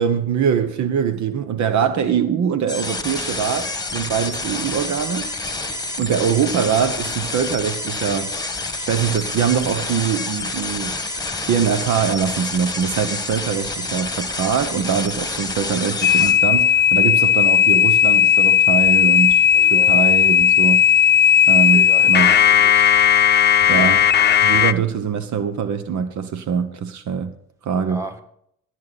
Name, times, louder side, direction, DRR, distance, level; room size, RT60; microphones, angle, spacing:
voice 1, 0.0-5.3 6.0-8.4 8.9-20.9 21.5-22.3 23.7-24.1 24.4-27.4 27.6-28.1, right 7 dB, 70° right, 1.1 m, -23 dB
sound 1, 2.7-16.3, left 3 dB, 10° left, 1.6 m, -28 dB
sound 2, 16.0-24.7, left 10 dB, 35° left, 0.7 m, -15 dB
voice 2, 19.5-20.1 21.7-23.0 27.9-28.2, right 1 dB, 10° right, 2.0 m, -36 dB
14.0 x 9.8 x 4.1 m
cardioid pair, 90°, 30 cm